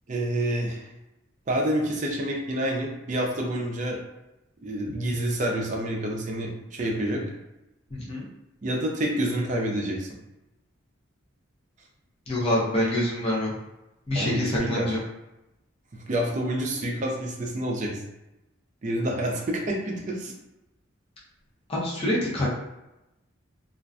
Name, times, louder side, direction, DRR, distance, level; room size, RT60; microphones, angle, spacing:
voice 1, 0.1-0.8 1.5-4.0 4.6-7.2 8.6-10.2 14.1-14.9 15.9-18.0 18.8-20.3, right 1 dB, 35° right, 0 dB, 0.4 m, -28 dB
voice 2, 7.9-8.3 12.3-13.5 14.1-15.0 21.7-22.5, left 1 dB, 30° left, -6 dB, 0.6 m, -26 dB
2.4 x 2.1 x 2.4 m, 0.93 s
head